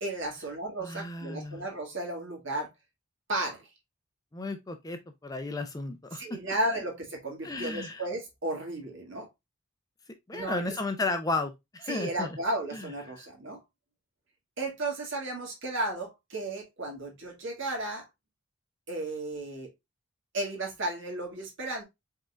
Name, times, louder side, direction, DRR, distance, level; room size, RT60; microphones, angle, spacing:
voice 1, 0.0-2.7 3.3-3.7 6.1-9.3 10.3-10.7 11.9-13.6 14.6-18.0 18.9-19.7 20.3-21.8, right 1 dB, 55° right, 1.9 m, -34 dB
voice 2, 0.8-1.7 4.3-6.5 7.4-8.0 10.3-12.3 12.7-13.3, left 2 dB, 15° left, 0.5 m, -34 dB
5.2 x 3.8 x 2.3 m
head